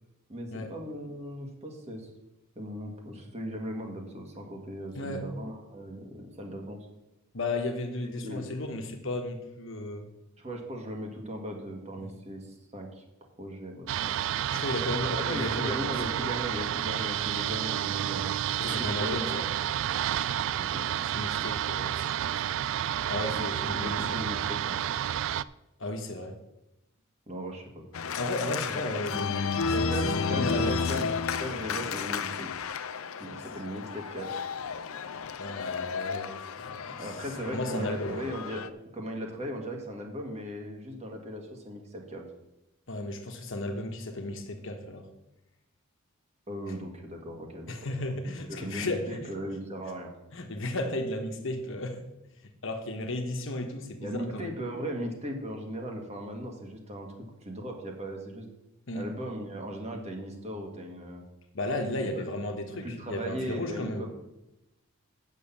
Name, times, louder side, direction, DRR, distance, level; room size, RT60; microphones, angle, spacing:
voice 1, 0.3-2.1 2.6-6.8 8.0-8.5 10.4-13.0 13.4-14.1 15.0-18.3 18.6-19.4 20.6-20.9 23.3-24.8 27.3-28.0 28.7-28.9 29.7-31.1 31.4-32.5 33.2-34.4 37.0-42.2 46.5-47.7 48.1-48.2 48.5-50.1 54.0-57.1 57.4-58.5 58.9-61.2 62.7-64.1, equal, 30° right, 2 dB, 1.8 m, -38 dB
voice 2, 4.9-5.3 7.3-10.1 12.0-12.1 14.5-15.8 16.2-16.4 18.6-19.4 21.1-22.7 23.1-24.2 25.8-26.4 28.0-29.9 30.1-31.1 35.4-37.0 37.5-38.2 42.9-45.0 47.7-49.2 50.3-52.0 52.6-54.5 58.9-59.0 61.5-64.0, left 1 dB, 65° left, 5 dB, 1.3 m, -34 dB
sound 1, 13.9-25.4, right 11 dB, 65° right, 0.3 m, -30 dB
Organ, 27.9-38.7, left 5 dB, 85° left, 0.6 m, -32 dB
8.5 x 6.5 x 7.3 m, 0.95 s
head